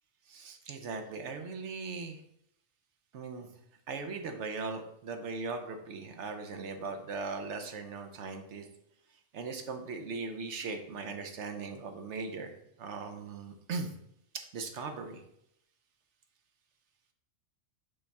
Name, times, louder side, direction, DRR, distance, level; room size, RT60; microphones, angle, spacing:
voice 1, 0.3-2.2 3.1-3.5 3.9-8.7 9.3-13.9 14.3-15.2, right 4 dB, 70° right, 6 dB, 1.0 m, -39 dB
5.5 x 3.4 x 5.3 m, 0.76 s
omnidirectional pair, 1.3 m